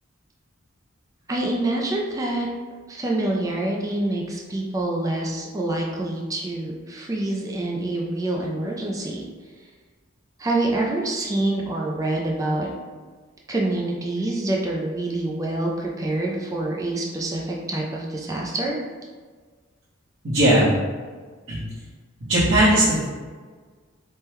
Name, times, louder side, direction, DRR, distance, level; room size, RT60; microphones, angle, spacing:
voice 1, 1.3-2.5 2.9-9.2 10.4-12.7 13.5-18.8, right 2 dB, 15° right, -2 dB, 0.3 m, -26 dB
voice 2, 20.2-20.7 21.5-21.6 22.3-23.1, right 1 dB, 65° right, -14 dB, 1.0 m, -18 dB
3.5 x 2.2 x 2.9 m, 1.5 s
head